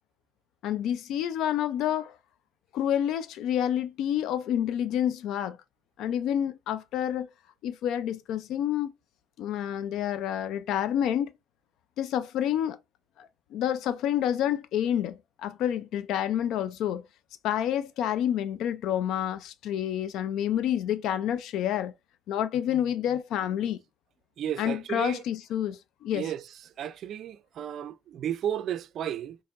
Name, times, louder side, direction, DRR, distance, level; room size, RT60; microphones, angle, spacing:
voice 1, 0.6-2.2 2.7-5.6 6.0-7.3 7.6-8.9 9.4-11.3 12.0-12.8 13.2-17.0 17.4-21.9 22.3-23.8 24.6-26.3, left 10 dB, 80° left, 0.3 m, -28 dB
voice 2, 24.4-25.2 26.1-26.4 26.8-29.4, right 10 dB, 60° right, 0.4 m, -33 dB
4.4 x 2.9 x 2.4 m
cardioid pair, 140°, 0 cm